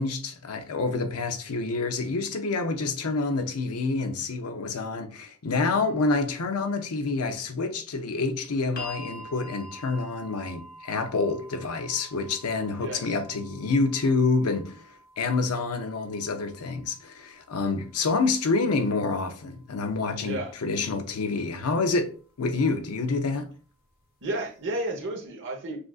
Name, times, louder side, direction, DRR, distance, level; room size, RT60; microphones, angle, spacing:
voice 1, 0.0-14.7 15.2-22.1 22.4-23.5, left 3 dB, 85° left, 0.6 m, -27 dB
sound 1, 8.8-20.8 21.9-22.0, left 1 dB, 45° left, 0.9 m, -48 dB
voice 2, 12.7-13.2 20.2-20.5 24.2-25.8, right 1 dB, 55° right, 1.0 m, -32 dB
6.4 x 2.5 x 2.4 m
head